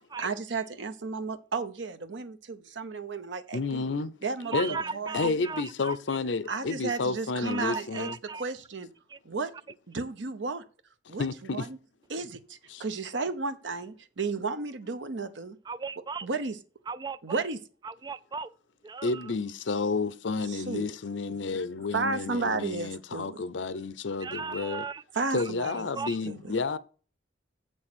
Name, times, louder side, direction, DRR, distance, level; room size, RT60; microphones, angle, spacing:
voice 1, 0.2-3.9 4.2-4.5 4.9-5.4 6.5-8.1 8.4-8.9 9.2-9.5 9.9-10.6 11.1-11.3 11.5-11.8 12.1-15.6 16.2-16.5 17.2-17.6 20.5-20.9 21.8-23.4 25.1-25.9 26.3-26.4, right 4 dB, 80° right, 0.9 m, -33 dB
voice 2, 3.5-4.1 4.5-4.8 5.1-8.1 11.1-11.7 12.7-12.8 19.0-24.9 25.3-26.8, left 4 dB, 85° left, 0.7 m, -31 dB
voice 3, 4.4-6.0 6.5-6.6 7.4-8.4 9.1-9.2 15.7-16.3 16.9-17.4 17.8-18.5 18.8-19.3 24.2-25.0 25.4-25.5 25.9-26.2, right 5 dB, 25° right, 0.3 m, -37 dB
7.6 x 6.3 x 6.1 m
head